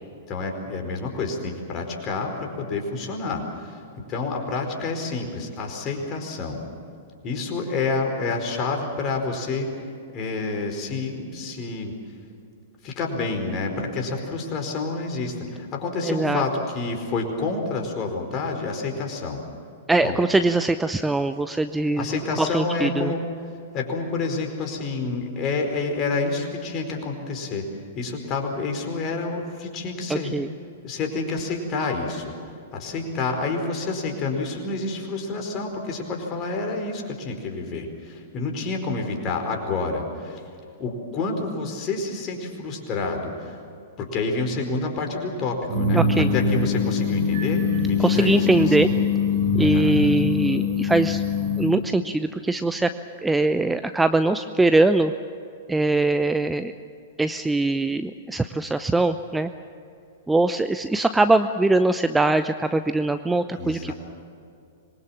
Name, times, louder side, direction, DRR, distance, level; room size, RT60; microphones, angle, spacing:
voice 1, 0.3-3.8 4.1-6.6 7.2-9.7 10.1-11.9 12.8-19.4 20.0-20.2 22.0-23.2 23.7-27.7 27.9-30.3 30.8-32.3 32.7-40.4 40.8-43.6 44.0-48.8 49.6-50.0 63.6-63.9, left 3 dB, 30° left, 3 dB, 4.6 m, -28 dB
voice 2, 16.0-16.4 19.9-23.1 30.1-30.5 45.9-46.3 48.0-48.9 49.5-51.2 51.6-52.9 53.2-55.1 55.7-56.7 57.2-59.5 60.3-63.9, right 2 dB, 5° right, 10 dB, 0.7 m, -22 dB
sound 1, 45.7-51.7, left 5 dB, 60° right, 6.8 m, -23 dB
26.0 x 22.0 x 7.4 m, 2.5 s
figure-of-eight pair, 105°, 0 cm